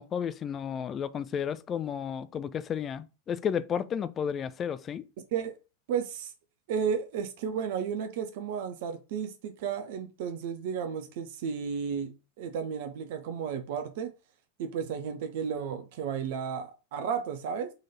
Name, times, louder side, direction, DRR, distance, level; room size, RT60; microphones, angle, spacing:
voice 1, 0.0-5.1, left 8 dB, 25° left, 0.4 m, -32 dB
voice 2, 5.9-6.3 6.7-14.1 14.6-17.7, right 7 dB, 50° right, 0.7 m, -33 dB
3.9 x 3.2 x 4.1 m
figure-of-eight pair, 90°, 0 cm